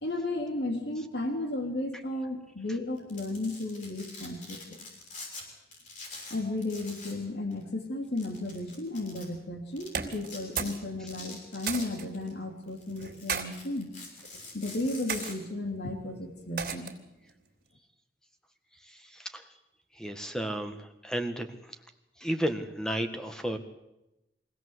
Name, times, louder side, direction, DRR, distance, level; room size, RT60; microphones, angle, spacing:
voice 1, 0.0-4.8 6.3-13.9 14.5-16.9, left 2 dB, 70° left, 5 dB, 2.8 m, -34 dB
Domestic sounds home sounds, 3.0-5.4 5.7-7.2 7.5-7.6 8.2-9.3 9.8-9.9 10.2-10.7 11.1-12.3 12.7-15.3, left 3 dB, 45° left, 6.6 m, -45 dB
sound 1, 9.9-10.8 11.1-12.1 13.0-13.5 14.2-14.5 15.1-15.4 16.6-17.1, right 6 dB, 55° right, 3.0 m, -34 dB
voice 2, 20.0-21.5 22.2-23.6, right 1 dB, 5° left, 7 dB, 1.7 m, -32 dB
23.5 x 17.0 x 8.0 m, 0.93 s
head